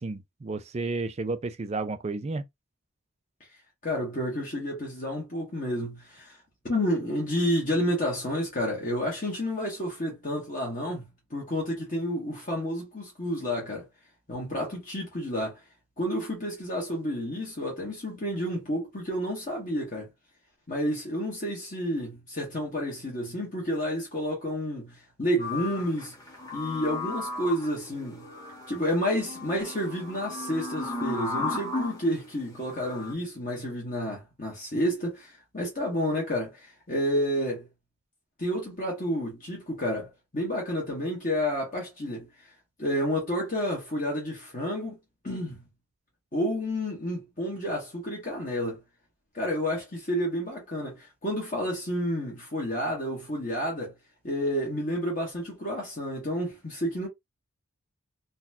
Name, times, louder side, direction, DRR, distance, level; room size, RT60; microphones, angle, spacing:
voice 1, 0.0-2.4, right 3 dB, 30° right, 0.4 m, -32 dB
voice 2, 3.8-6.4 6.6-13.9 14.3-15.6 16.0-20.1 20.7-26.1 26.5-28.2 28.7-37.7 38.4-42.5 42.8-45.0 45.2-45.6 46.3-48.8 49.3-53.9 54.2-57.1, equal, 35° left, 1.2 m, -30 dB
sound 1, 25.4-32.0 32.7-33.1, left 2 dB, 15° left, 1.1 m, -35 dB
3.9 x 2.3 x 2.7 m
head